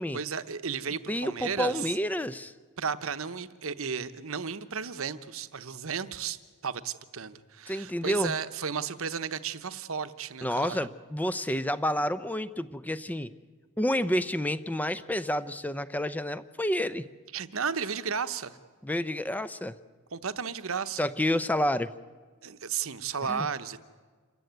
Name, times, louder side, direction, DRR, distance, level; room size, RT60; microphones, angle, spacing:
voice 1, 0.1-1.9 2.8-10.9 17.3-18.6 20.1-21.0 22.4-23.8, right 6 dB, 65° right, 12 dB, 1.0 m, -34 dB
voice 2, 1.1-2.5 7.7-8.3 10.4-13.3 13.8-17.0 18.8-19.8 21.0-21.9 23.3-23.5, left 1 dB, 5° left, 14 dB, 0.6 m, -29 dB
27.5 x 14.5 x 9.3 m, 1.5 s
head